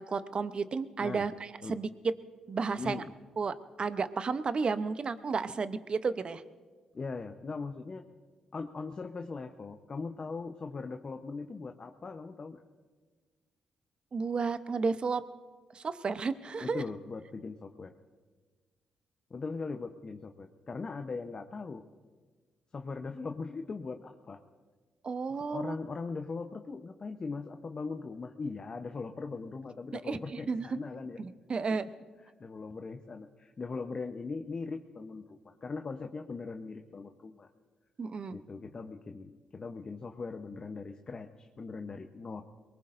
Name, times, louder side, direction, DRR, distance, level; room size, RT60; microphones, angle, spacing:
voice 1, 0.0-1.9 2.5-3.0 3.4-6.4 14.1-15.2 15.7-16.8 25.0-25.7 30.1-30.7 31.2-31.9 38.0-38.4, right 4 dB, 50° right, 12 dB, 0.8 m, -32 dB
voice 2, 2.7-3.1 6.9-8.0 8.5-12.6 16.6-17.9 19.3-21.8 22.7-24.4 25.5-31.2 32.4-37.5 38.3-42.4, left 4 dB, 40° left, 5 dB, 0.9 m, -40 dB
22.5 x 19.5 x 2.6 m, 1.4 s
supercardioid pair, 55°, 2 cm